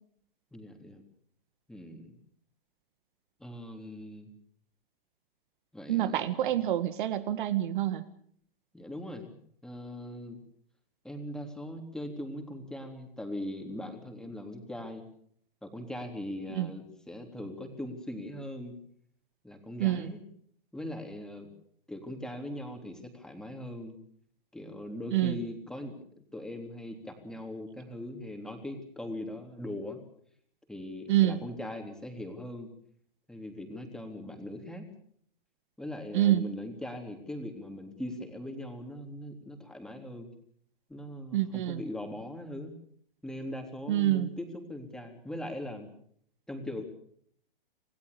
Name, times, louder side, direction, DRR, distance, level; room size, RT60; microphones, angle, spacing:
voice 1, 0.5-1.0 1.7-2.1 3.4-4.3 5.7-6.3 8.7-10.4 11.0-15.0 15.6-18.7 19.4-20.2 20.7-21.5 21.9-24.0 24.5-25.9 26.3-30.0 30.7-32.7 33.3-34.9 35.8-40.3 40.9-42.8 43.2-45.9 46.5-46.8, left 1 dB, ahead, 4 dB, 3.5 m, -40 dB
voice 2, 5.9-8.1 16.5-16.7 19.8-20.1 25.1-25.4 31.1-31.4 36.1-36.5 41.3-41.8 43.9-44.3, right 13 dB, 55° right, 12 dB, 1.8 m, -27 dB
27.5 x 17.5 x 7.0 m, 0.64 s
hypercardioid pair, 135°, 29 cm